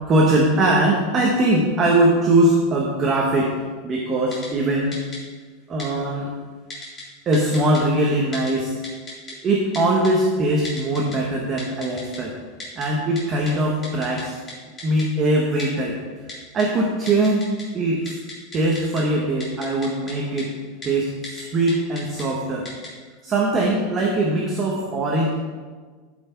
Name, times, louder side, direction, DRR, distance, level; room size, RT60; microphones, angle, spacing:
voice 1, 0.1-3.5 3.8-5.0 5.7-6.3 7.3-8.7 9.4-12.3 12.8-14.4 14.8-16.0 16.5-18.1 18.5-20.5 20.8-22.7 23.2-25.3, right 1 dB, 20° right, -1 dB, 1.0 m, -21 dB
Typing, 4.3-4.5 4.9-5.2 5.8-5.9 6.7-7.0 7.3-7.8 8.3-8.5 8.8-9.3 9.7-10.1 10.6-11.2 11.6-12.2 12.6-12.9 13.2-13.3 13.5-13.6 13.8-14.2 14.5-14.6 14.8-15.0 15.6-15.7 16.3-16.6 17.1-17.6 17.9-19.0 19.4-20.1 20.4-20.5 20.8-20.9 21.2-21.4 21.7-22.2 22.6-22.9, left 3 dB, 15° left, 2.3 m, -35 dB
12.5 x 5.6 x 4.6 m, 1.5 s
supercardioid pair, 175°, 0 cm